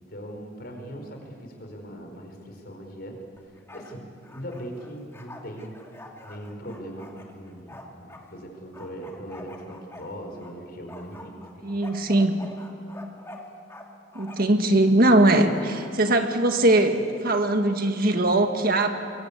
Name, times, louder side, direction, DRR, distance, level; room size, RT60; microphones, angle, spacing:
voice 1, 0.0-5.8 6.2-7.1 7.4-11.4 11.7-11.8, equal, 55° left, 3 dB, 4.5 m, -40 dB
Bark, 3.4-3.9 4.2-8.2 8.7-10.5 10.9-13.8 14.1-14.6 15.3-16.2, left 2 dB, 15° left, 2.1 m, -45 dB
voice 2, 11.6-12.4 14.1-18.9, right 1 dB, 50° right, 6 dB, 1.6 m, -21 dB
24.5 x 22.5 x 8.5 m, 2.5 s
head